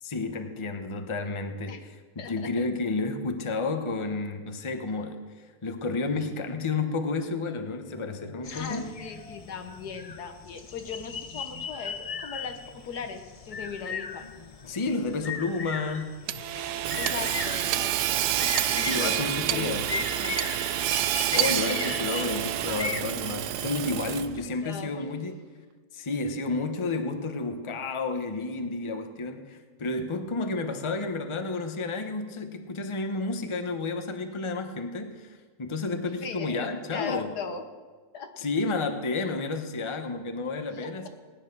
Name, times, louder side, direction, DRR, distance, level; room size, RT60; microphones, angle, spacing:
voice 1, 0.0-5.3 5.6-8.9 14.6-16.2 18.8-19.9 21.3-25.4 25.9-37.3 38.4-41.1, left 3 dB, 20° left, 7 dB, 0.9 m, -31 dB
voice 2, 2.2-2.7 8.5-14.3 16.9-19.2 19.5-20.7 24.6-25.2 36.2-37.6 38.1-38.3 40.7-41.1, left 5 dB, 80° left, 7 dB, 1.7 m, -39 dB
sound 1, 8.4-23.0, left 5 dB, 45° left, 0.4 m, -38 dB
Hammer / Sawing, 16.3-24.5, right 12 dB, 80° right, 1.1 m, -28 dB
18.5 x 10.0 x 6.1 m, 1.4 s
omnidirectional pair, 1.7 m